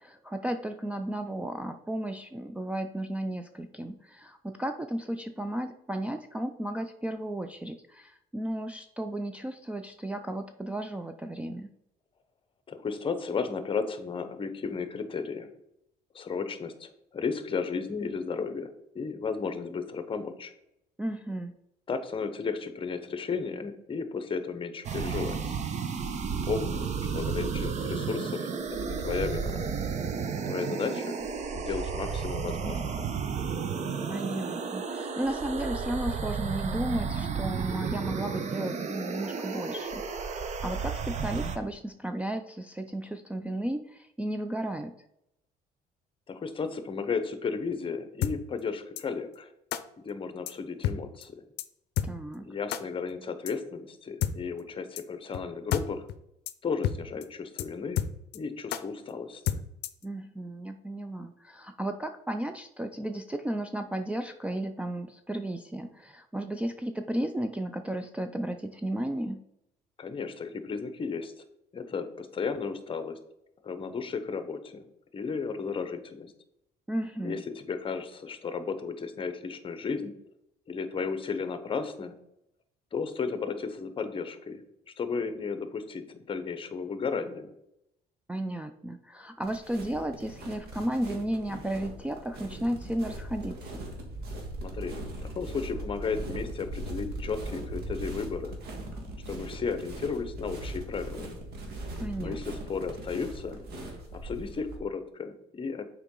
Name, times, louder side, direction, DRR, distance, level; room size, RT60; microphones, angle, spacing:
voice 1, 0.0-11.7 21.0-21.5 34.1-44.9 52.0-52.5 60.0-69.4 76.9-77.4 88.3-93.7 102.0-102.4, right 1 dB, 10° right, 4 dB, 0.3 m, -34 dB
voice 2, 12.7-15.5 16.1-18.7 18.9-20.5 21.9-25.5 26.4-28.5 28.8-29.6 30.4-31.2 31.5-33.1 46.3-49.5 50.0-51.4 52.4-56.0 56.6-58.0 58.3-59.6 70.0-71.3 71.7-73.2 73.6-74.8 75.1-76.3 77.2-80.1 80.7-82.2 82.9-87.5 94.6-98.6 99.3-101.3 102.2-103.6 104.1-105.9, left 5 dB, 30° left, 10 dB, 0.8 m, -34 dB
sound 1, 24.8-41.6, right 6 dB, 45° right, 0.8 m, -32 dB
sound 2, 48.2-48.3 49.0-49.1 49.7-49.8 50.5-50.6 50.8-51.0 51.2-51.3 51.6-51.7 52.0-52.1 52.7-52.8 53.5-53.6 54.2-54.3 55.0-55.1 55.3-55.4 55.7-55.8 56.1-56.2 56.5-56.6 56.8-57.0 57.2-57.3 57.6-57.7 58.0-58.4 58.7-58.8 59.5-60.0, left 11 dB, 75° left, 0.5 m, -29 dB
sound 3, 89.4-104.8, right 1 dB, 70° right, 1.6 m, -40 dB
6.8 x 4.7 x 3.8 m, 0.80 s
cardioid pair, 110°, 17 cm